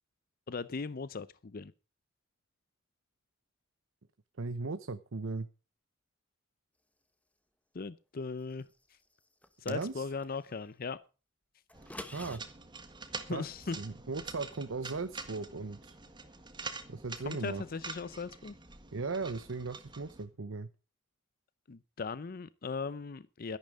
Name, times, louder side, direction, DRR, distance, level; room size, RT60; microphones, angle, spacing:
voice 1, 0.5-1.7 7.7-8.7 9.6-11.0 13.3-13.8 17.3-18.5 21.7-23.6, left 4 dB, 50° left, 0.6 m, -38 dB
voice 2, 4.4-5.5 9.7-10.0 12.1-12.4 13.3-13.4 13.7-15.9 16.9-17.6 18.9-20.7, right 3 dB, 75° right, 0.8 m, -37 dB
sound 1, 9.4-10.3 11.7-12.4, left 1 dB, 5° left, 1.2 m, -46 dB
sound 2, 11.7-20.3, right 4 dB, 25° right, 1.6 m, -46 dB
12.5 x 11.0 x 5.0 m
head